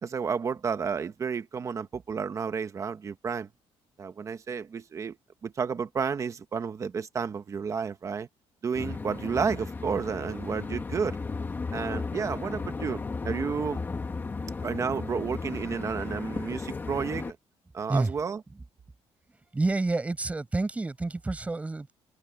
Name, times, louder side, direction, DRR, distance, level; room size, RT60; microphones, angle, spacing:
voice 1, 0.0-3.5 4.0-5.2 5.4-8.3 8.6-11.2 11.7-13.8 14.6-17.4 17.7-18.4, right 6 dB, 30° right, 1.2 m, -31 dB
sound 1, 8.7-17.3, left 4 dB, 20° left, 1.8 m, -35 dB
voice 2, 19.5-21.9, right 2 dB, 10° right, 5.6 m, -28 dB
open air
cardioid pair, 175°, 11 cm